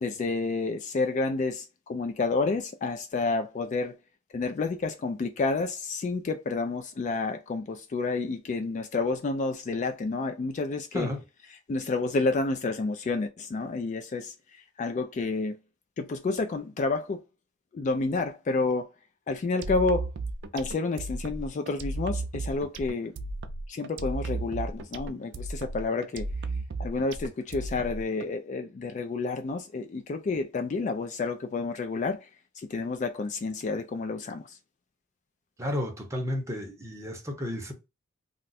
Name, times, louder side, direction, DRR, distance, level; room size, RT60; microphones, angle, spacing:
voice 1, 0.0-3.9 4.3-11.1 11.7-14.3 14.8-15.6 16.0-17.2 17.7-18.9 19.3-20.1 20.5-23.1 23.7-26.3 26.8-32.3 32.6-34.5, left 3 dB, 35° left, 0.3 m, -29 dB
sound 1, 19.6-28.3, right 2 dB, 60° right, 0.4 m, -34 dB
voice 2, 35.6-37.7, left 1 dB, 15° right, 0.8 m, -32 dB
2.5 x 2.2 x 4.0 m
head